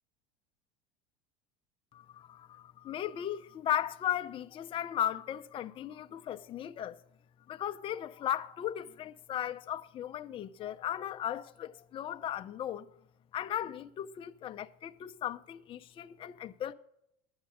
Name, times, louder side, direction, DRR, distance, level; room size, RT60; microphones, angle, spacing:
voice 1, 1.9-7.0 7.5-12.9 13.3-16.7, left 11 dB, 30° left, 0.5 m, -36 dB
11.5 x 9.5 x 4.9 m
supercardioid pair, 120°, 17 cm